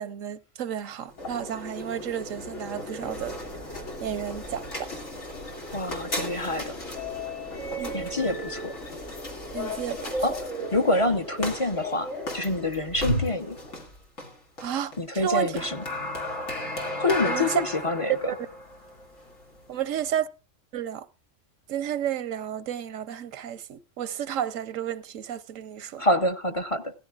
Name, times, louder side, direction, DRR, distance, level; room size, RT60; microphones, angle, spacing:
voice 1, 0.0-3.3 4.0-4.9 7.8-8.0 9.5-10.0 14.6-15.7 17.2-17.5 18.3-18.4 19.7-20.3 20.7-21.1 21.7-26.0, right 9 dB, 85° right, 1.1 m, -32 dB
sound 1, 1.1-20.2, left 1 dB, 90° left, 2.9 m, -34 dB
sound 2, 3.0-10.5, equal, 50° left, 4.1 m, -49 dB
voice 2, 5.7-6.7 7.9-8.7 10.2-10.3 10.7-12.1 12.3-13.6 15.0-15.8 17.0-18.3 26.0-26.9, left 2 dB, 30° left, 0.8 m, -26 dB
16.5 x 14.0 x 2.4 m
omnidirectional pair, 1.3 m